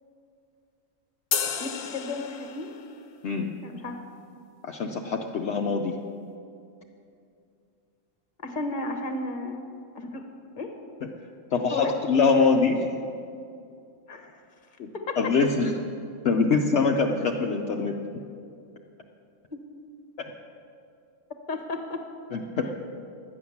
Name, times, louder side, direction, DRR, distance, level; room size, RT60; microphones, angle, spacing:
sound 1, 1.3-2.9, left 7 dB, 85° left, 1.2 m, -31 dB
voice 1, 1.6-2.7 3.6-4.0 8.4-9.6 9.9-10.3 10.6-10.7 11.7-11.9 12.4-12.5 14.1-14.4 14.9-15.3 19.5-19.6 21.5-22.1, left 3 dB, 40° left, 5 dB, 1.3 m, -33 dB
voice 2, 4.6-5.9 11.5-13.0 14.8-14.9 15.2-15.7 16.2-17.9 20.2-20.3 22.3-22.7, left 4 dB, 65° left, 1 dB, 1.0 m, -24 dB
12.0 x 9.4 x 7.1 m, 2.5 s
omnidirectional pair, 1.3 m